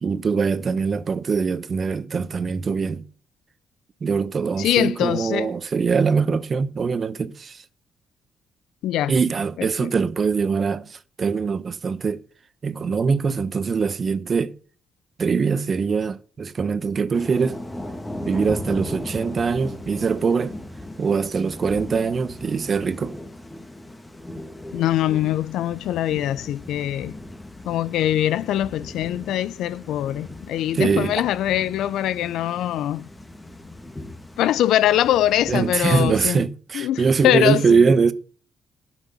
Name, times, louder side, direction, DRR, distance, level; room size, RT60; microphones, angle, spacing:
voice 1, 0.0-3.0 4.0-7.6 9.1-12.2 12.6-14.5 15.2-17.6 18.2-20.6 21.0-23.2 30.7-31.2 35.5-38.1, right 5 dB, 40° right, 1.0 m, -22 dB
voice 2, 4.6-5.5 8.8-9.1 9.6-9.9 24.7-27.1 27.7-33.1 34.4-36.4 36.7-37.8, left 12 dB, 85° left, 0.5 m, -23 dB
Thunder / Rain, 17.1-36.3, left 1 dB, 15° left, 1.8 m, -38 dB
11.5 x 6.3 x 7.9 m
cardioid pair, 90°, 0 cm